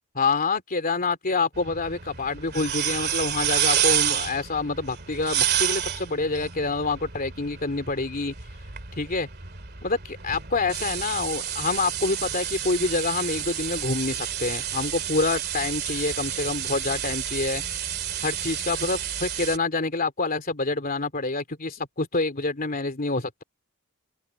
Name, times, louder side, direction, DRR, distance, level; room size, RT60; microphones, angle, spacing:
voice 1, 0.1-8.3 9.0-9.3 9.8-17.6 18.2-23.4, left 3 dB, 40° left, 3.2 m, -27 dB
sound 1, 1.5-19.6, right 10 dB, 50° right, 2.3 m, -30 dB
open air
head